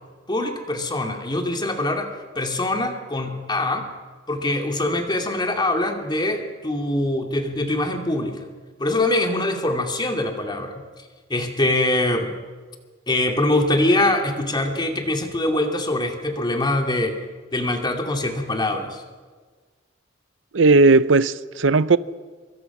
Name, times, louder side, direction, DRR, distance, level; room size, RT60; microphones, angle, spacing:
voice 1, 0.3-2.1 2.3-3.9 4.3-8.5 8.8-10.8 11.3-12.3 13.1-17.2 17.5-19.0, left 1 dB, 25° left, 2.6 m, -23 dB
voice 2, 20.5-22.0, right 3 dB, 85° right, 0.7 m, -16 dB
24.5 x 24.0 x 6.1 m
head